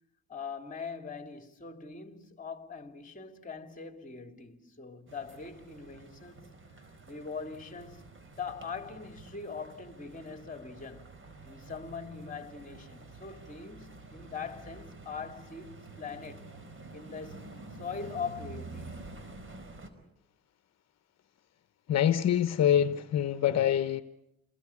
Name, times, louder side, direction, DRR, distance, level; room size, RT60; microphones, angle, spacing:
voice 1, 0.3-6.4 7.1-8.1 8.4-11.2 11.4-16.5 16.9-17.5 17.8-19.2, left 5 dB, 25° left, 2.9 m, -42 dB
sound 1, 5.1-19.9, right 3 dB, 40° right, 4.8 m, -49 dB
voice 2, 21.9-24.0, left 10 dB, 60° left, 1.0 m, -25 dB
28.5 x 20.5 x 8.5 m
cardioid pair, 90°, 30 cm